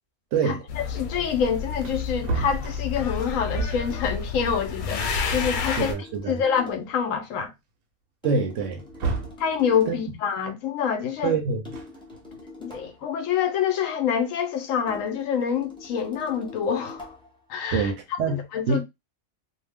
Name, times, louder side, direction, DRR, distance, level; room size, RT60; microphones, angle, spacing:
voice 1, 0.3-0.7 5.7-6.4 8.2-8.8 9.9-10.0 11.2-11.6 17.7-18.4 18.7-18.8, right 4 dB, 70° right, 0.8 m, -25 dB
sound 1, 0.7-5.9, left 5 dB, 90° left, 1.1 m, -30 dB
voice 2, 0.9-5.0 5.3-5.9 6.3-7.5 9.4-11.3 12.6-17.1 17.5-17.9 18.3-18.8, left 7 dB, 75° left, 0.9 m, -26 dB
Wood, 1.7-4.0 5.1-5.2 5.5-6.7 7.2-7.3 8.6-9.5 11.5-12.5, right 5 dB, 90° right, 1.1 m, -33 dB
sound 2, 3.9-4.3 5.4-7.0 8.2-10.1 11.6-13.1 14.9-17.4, left 3 dB, 5° left, 0.5 m, -44 dB
2.7 x 2.0 x 3.4 m
omnidirectional pair, 1.5 m